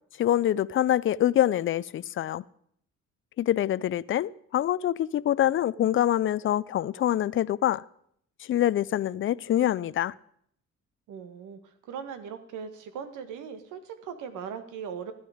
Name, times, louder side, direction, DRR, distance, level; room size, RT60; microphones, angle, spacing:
voice 1, 0.2-2.4 3.4-7.8 8.4-10.1, left 12 dB, 45° left, 0.4 m, -25 dB
voice 2, 11.1-15.1, right 7 dB, 90° right, 1.5 m, -39 dB
14.5 x 9.7 x 5.0 m
cardioid pair, 90°, 30 cm